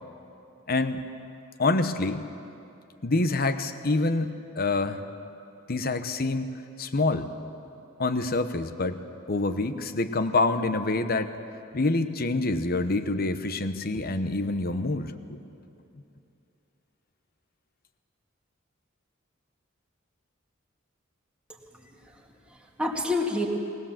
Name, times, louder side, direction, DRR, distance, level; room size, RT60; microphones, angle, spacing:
voice 1, 0.7-1.0 1.6-2.2 3.0-5.0 5.7-6.5 6.8-7.3 8.0-9.0 9.3-11.3 11.7-15.4, left 2 dB, 50° left, 10 dB, 1.0 m, -26 dB
voice 2, 21.5-23.5, left 2 dB, 5° right, -1 dB, 2.1 m, -31 dB
20.0 x 19.5 x 7.4 m, 2.8 s
head